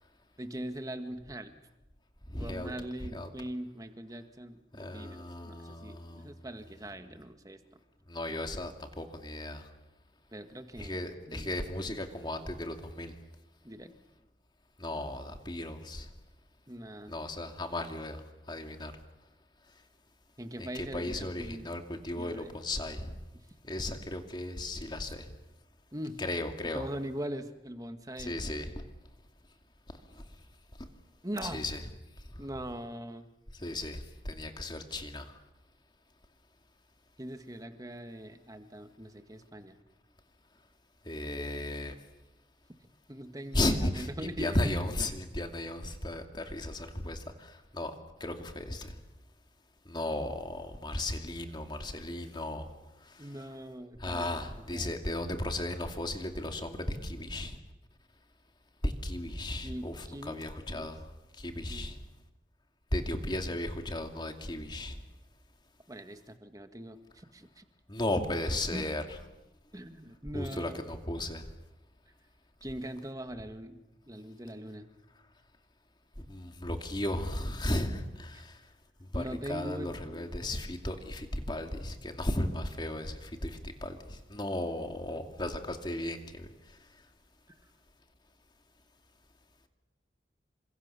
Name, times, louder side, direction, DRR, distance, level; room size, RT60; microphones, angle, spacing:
voice 1, 0.4-1.5 2.4-7.6 10.3-11.7 13.6-13.9 16.7-17.1 20.4-21.7 22.1-22.6 23.3-23.4 25.0-25.1 25.9-26.2 26.6-28.4 31.2-31.6 32.4-33.3 37.2-39.8 43.1-44.6 46.4-46.5 53.2-55.0 59.6-60.4 60.7-60.9 61.7-61.9 65.9-67.6 68.7-68.9 69.7-70.8 72.6-74.9 78.3-78.4 79.1-80.0, right 1 dB, 20° right, 7 dB, 1.8 m, -41 dB
voice 2, 2.3-2.7 3.1-3.3 4.8-6.3 8.1-9.6 10.8-13.1 14.8-16.1 17.1-18.2 18.5-18.9 20.6-23.1 23.7-25.3 26.2-26.9 28.2-28.7 30.1-30.2 31.4-31.8 32.3-32.4 33.6-35.3 41.1-41.9 43.5-47.9 48.2-48.9 49.9-52.6 54.0-57.6 58.8-61.0 61.4-62.0 62.9-65.0 67.9-69.0 70.3-71.4 76.3-78.5 79.1-86.5, left 1 dB, 25° left, 5 dB, 2.6 m, -35 dB
28.5 x 25.5 x 7.0 m, 0.99 s
head